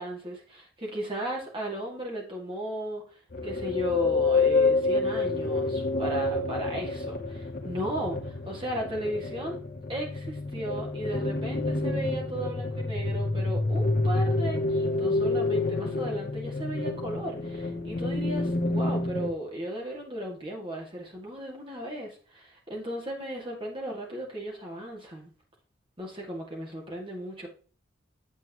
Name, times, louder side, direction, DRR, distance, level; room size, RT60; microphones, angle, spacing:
voice 1, 0.0-9.6 9.9-25.3 26.0-27.5, right 1 dB, 25° right, -1 dB, 2.2 m, -35 dB
sound 1, 3.3-19.3, left 3 dB, 45° left, 1.0 m, -28 dB
8.9 x 7.7 x 3.0 m, 0.41 s
head